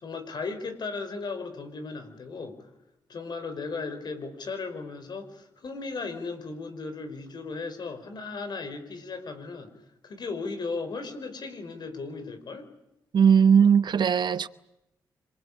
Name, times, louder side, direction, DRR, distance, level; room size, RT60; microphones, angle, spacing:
voice 1, 0.0-2.7 3.1-9.7 10.0-12.7, left 4 dB, 60° left, 4.9 m, -36 dB
voice 2, 13.1-14.5, right 7 dB, 65° right, 0.9 m, -19 dB
26.5 x 22.5 x 8.7 m
cardioid pair, 70°, 8 cm